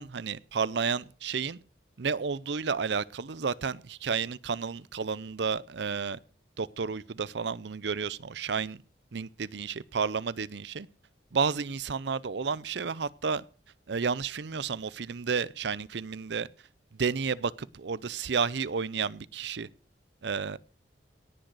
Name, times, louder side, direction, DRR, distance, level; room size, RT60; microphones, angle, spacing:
voice 1, 0.0-1.6 2.0-6.2 6.6-8.8 9.1-10.9 11.3-13.4 13.9-16.5 16.9-19.7 20.2-20.6, right 5 dB, 70° right, 0.6 m, -31 dB
18.0 x 6.5 x 6.2 m
head